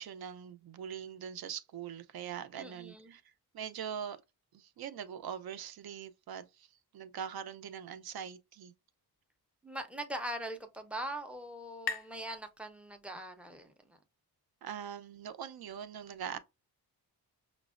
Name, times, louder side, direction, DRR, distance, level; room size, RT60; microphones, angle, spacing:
voice 1, 0.0-3.2 3.5-4.2 4.5-8.7 14.6-16.4, right 8 dB, 70° right, 0.5 m, -42 dB
voice 2, 2.6-3.1 9.6-14.0, right 1 dB, 5° right, 0.4 m, -41 dB
sound 1, 10.4-13.8, left 5 dB, 65° left, 0.5 m, -45 dB
5.8 x 2.0 x 2.4 m
wide cardioid pair, 155°, 39 cm